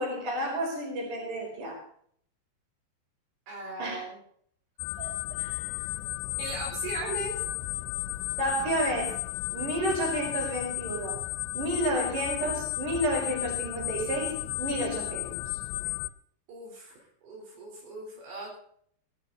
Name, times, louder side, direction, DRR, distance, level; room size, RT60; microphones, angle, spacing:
voice 1, 0.0-1.8 3.8-4.0 5.0-5.8 8.4-9.2 9.5-11.2 11.5-15.6, right 1 dB, 45° right, 0 dB, 6.1 m, -31 dB
voice 2, 3.5-4.2 6.4-7.4 16.5-18.6, right 2 dB, 75° right, -1 dB, 6.3 m, -38 dB
sound 1, 4.8-16.1, left 19 dB, 80° left, 2.9 m, -34 dB
16.5 x 12.5 x 4.1 m, 0.62 s
omnidirectional pair, 5.1 m